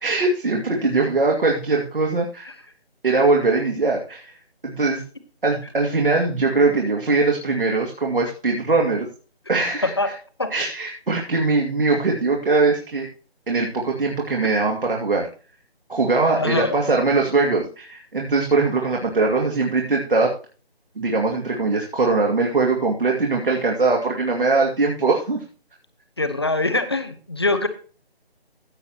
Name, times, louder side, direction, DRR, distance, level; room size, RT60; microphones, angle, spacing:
voice 1, 0.0-2.5 3.0-4.4 4.6-5.0 5.4-9.1 9.5-10.1 10.5-13.1 13.5-15.3 15.9-20.3 21.0-25.4, right 3 dB, 55° right, 0 dB, 2.4 m, -21 dB
voice 2, 16.4-16.7 26.2-27.7, left 2 dB, 25° left, 10 dB, 0.9 m, -23 dB
15.5 x 8.1 x 2.9 m, 0.37 s
figure-of-eight pair, 175°, 31 cm